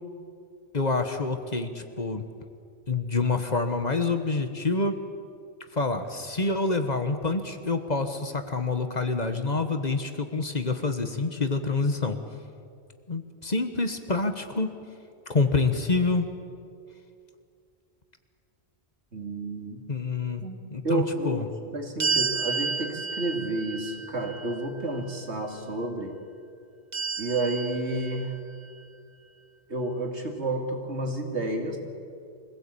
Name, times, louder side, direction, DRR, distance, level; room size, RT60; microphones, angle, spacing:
voice 1, 0.7-2.2 2.9-5.0 5.7-12.2 13.1-14.7 15.3-16.3 19.9-21.5, left 3 dB, 40° left, 8 dB, 1.4 m, -27 dB
voice 2, 19.1-19.8 20.4-21.5 21.7-26.1 27.2-28.3 29.7-31.8, right 2 dB, 85° right, 2 dB, 2.9 m, -30 dB
sound 1, 22.0-25.1 26.9-28.7, right 5 dB, 40° right, 1.2 m, -31 dB
24.5 x 16.5 x 8.6 m, 2.4 s
omnidirectional pair, 1.1 m